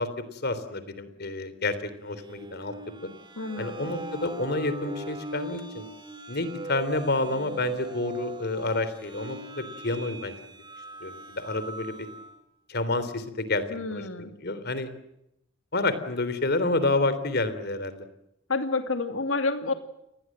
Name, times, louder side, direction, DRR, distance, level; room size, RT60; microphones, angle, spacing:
voice 1, 0.0-2.7 3.0-3.1 3.6-5.8 6.3-10.3 11.0-11.9 12.7-13.6 13.9-14.9 15.7-18.1, left 2 dB, 55° left, 13 dB, 3.5 m, -29 dB
sound 1, 2.1-12.4, right 3 dB, 25° right, 3.1 m, -40 dB
voice 2, 3.4-3.9 13.7-14.3 18.5-19.7, left 3 dB, 80° left, 8 dB, 2.6 m, -29 dB
29.5 x 20.5 x 7.5 m, 0.82 s
head